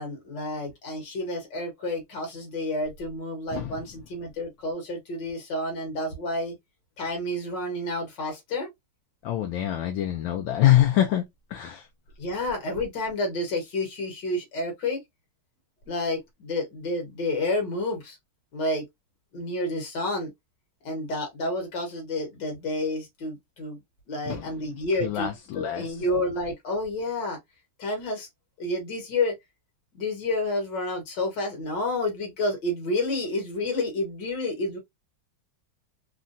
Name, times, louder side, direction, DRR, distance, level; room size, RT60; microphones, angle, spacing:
voice 1, 0.0-6.6 7.0-8.7 12.2-15.0 15.9-18.2 18.5-18.8 19.3-20.3 20.8-23.8 24.1-25.3 25.6-27.4 27.8-28.3 28.6-29.4 29.9-34.8, left 2 dB, 60° left, 1.9 m, -30 dB
voice 2, 9.2-11.2 11.5-11.9 24.3-24.5 25.0-26.0, left 12 dB, 75° left, 1.3 m, -24 dB
3.8 x 2.1 x 2.5 m
omnidirectional pair, 2.3 m